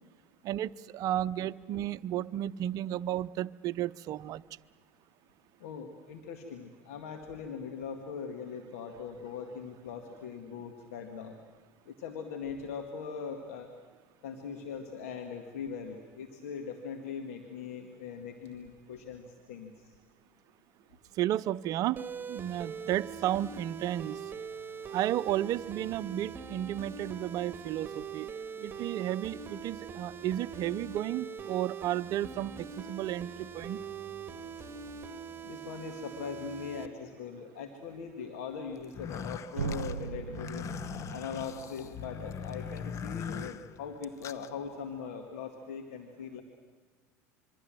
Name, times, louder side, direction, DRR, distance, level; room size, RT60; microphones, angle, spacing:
voice 1, 0.4-4.4 21.2-24.2 24.9-28.3 28.6-33.8, right 12 dB, 50° right, 15 dB, 0.7 m, -33 dB
voice 2, 5.6-11.4 11.9-13.7 14.2-19.2 19.5-19.7 35.4-40.7 41.1-46.4, left 6 dB, 75° left, 5 dB, 2.0 m, -41 dB
sound 1, 22.0-36.9, right 6 dB, 25° right, 1.9 m, -42 dB
sound 2, 38.8-44.5, left 7 dB, 40° left, 0.9 m, -40 dB
sound 3, 39.6-43.5, right 8 dB, 85° right, 0.7 m, -40 dB
26.5 x 23.0 x 7.7 m, 1.5 s
hypercardioid pair, 75°, 8 cm